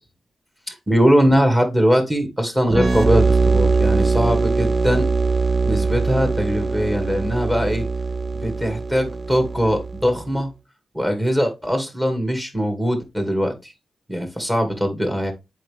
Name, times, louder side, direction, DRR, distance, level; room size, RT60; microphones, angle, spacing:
voice 1, 0.7-5.1 5.6-7.8 8.3-10.5 10.9-13.7 14.1-15.3, equal, 10° right, 2.3 m, -21 dB
sound 1, 2.7-10.2, right 4 dB, 30° right, 0.5 m, -21 dB
7.6 x 4.6 x 3.6 m
cardioid pair, 80°, 0 cm